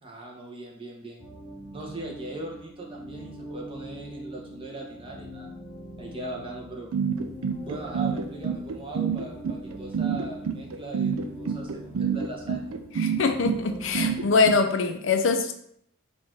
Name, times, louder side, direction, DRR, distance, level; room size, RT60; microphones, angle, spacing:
voice 1, 0.0-1.2 1.7-5.5 6.0-6.9 7.6-12.7, right 2 dB, 25° right, -2 dB, 0.8 m, -39 dB
sound 1, 1.2-14.3, equal, 20° left, 0.6 m, -43 dB
sound 2, 6.9-14.6, right 6 dB, 80° right, 0.4 m, -27 dB
voice 2, 13.0-15.5, left 4 dB, 60° left, 6 dB, 0.5 m, -23 dB
3.9 x 2.5 x 4.5 m, 0.69 s
head